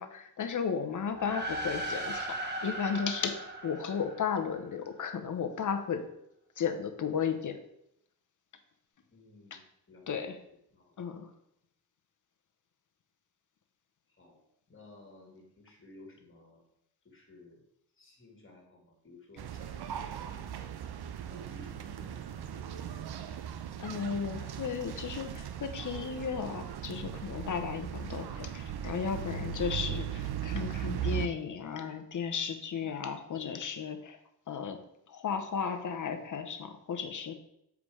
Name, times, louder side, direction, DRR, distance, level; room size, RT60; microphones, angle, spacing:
voice 1, 0.0-6.0 6.6-7.6 10.1-10.4 11.0-11.3 23.8-34.2 34.5-34.8 35.1-37.3, left 6 dB, 50° left, 7 dB, 0.9 m, -34 dB
sound 1, 1.1-4.8, right 1 dB, 25° right, 1.2 m, -38 dB
voice 2, 9.1-10.3 10.7-11.0 14.2-14.4 14.7-16.6 17.0-17.6 18.0-20.7 21.3-22.7, left 1 dB, 30° left, 1 dB, 2.0 m, -55 dB
sound 2, 19.4-31.3, right 9 dB, 70° right, 0.7 m, -38 dB
7.5 x 4.8 x 4.8 m, 0.77 s
wide cardioid pair, 160°, 40 cm